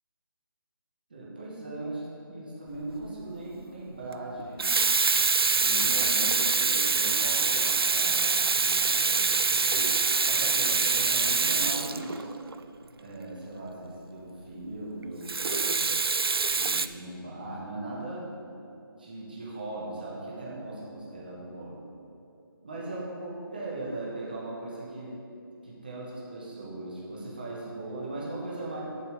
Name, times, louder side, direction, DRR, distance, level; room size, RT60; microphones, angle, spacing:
voice 1, 1.1-4.8 5.5-10.0 10.3-12.3 13.0-16.0 16.5-18.3 19.0-21.8 22.6-25.2 25.6-28.8, right 2 dB, 25° right, -5 dB, 1.5 m, -39 dB
Water tap faucet / Sink (filling or washing), 2.8-3.1 4.4-12.6 15.3-16.9, right 4 dB, 90° right, 0.5 m, -25 dB
9.1 x 6.9 x 5.3 m, 2.8 s
figure-of-eight pair, 180°, 12 cm